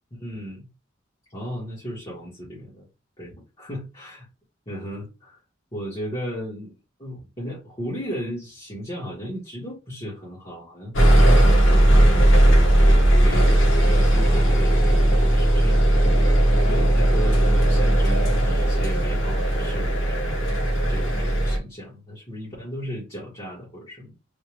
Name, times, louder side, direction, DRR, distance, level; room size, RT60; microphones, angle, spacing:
voice 1, 0.2-0.7 1.3-2.9 3.2-3.4 3.7-4.3 4.7-5.4 5.7-13.5 13.8-15.8 16.6-20.6 20.9-24.1, equal, 25° left, 1.6 m, -35 dB
sound 1, 10.9-21.6, right 1 dB, 85° left, 1.4 m, -17 dB
3.6 x 2.8 x 3.0 m
head